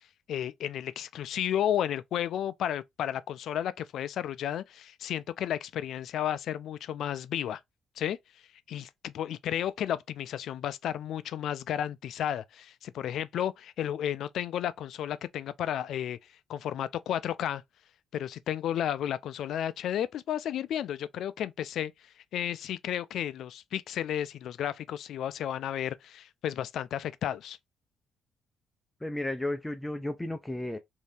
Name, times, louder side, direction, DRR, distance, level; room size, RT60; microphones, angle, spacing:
voice 1, 0.3-7.6 8.0-8.2 8.7-16.2 16.5-17.6 18.1-21.9 22.3-27.6, left 10 dB, 75° left, 0.3 m, -32 dB
voice 2, 29.0-30.8, left 1 dB, 10° left, 0.4 m, -33 dB
3.2 x 2.7 x 3.2 m
cardioid pair, 90°, 0 cm